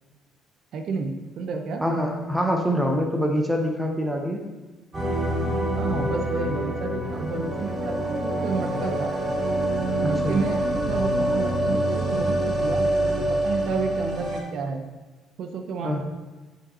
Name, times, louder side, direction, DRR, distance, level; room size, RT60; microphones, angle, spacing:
voice 1, 0.7-1.8 5.8-9.1 10.0-14.8 15.4-16.0, right 4 dB, 55° right, 5 dB, 0.7 m, -31 dB
voice 2, 1.8-4.4 10.2-10.4 15.8-16.0, equal, 5° right, 1 dB, 0.7 m, -25 dB
sound 1, 4.9-14.4, right 1 dB, 25° right, 1.7 m, -25 dB
7.4 x 5.4 x 4.3 m, 1.2 s
cardioid pair, 165°, 0 cm